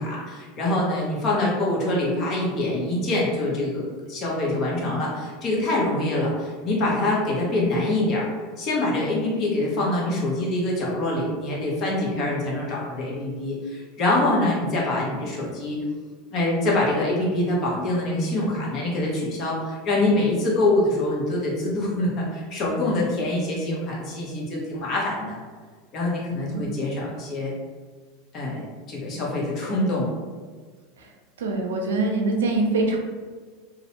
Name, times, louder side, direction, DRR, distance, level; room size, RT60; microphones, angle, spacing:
voice 1, 0.0-8.3 8.6-15.8 16.3-25.4 25.9-27.5 28.3-30.1, left 1 dB, 40° left, -4 dB, 0.9 m, -25 dB
voice 2, 31.4-33.0, right 2 dB, 90° right, 1 dB, 0.5 m, -24 dB
2.4 x 2.1 x 2.8 m, 1.5 s
hypercardioid pair, 110°, 0 cm